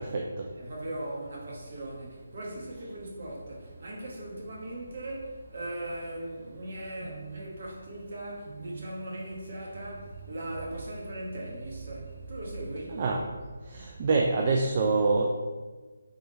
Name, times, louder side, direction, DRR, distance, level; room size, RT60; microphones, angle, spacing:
voice 1, 0.0-0.5 7.0-7.4 8.5-8.9 12.9-13.2 13.7-15.4, right 3 dB, 30° right, 1 dB, 0.3 m, -27 dB
voice 2, 0.6-13.0, right 1 dB, 50° right, -3 dB, 1.3 m, -39 dB
3.7 x 3.4 x 4.0 m, 1.3 s
hypercardioid pair, 170°, 0 cm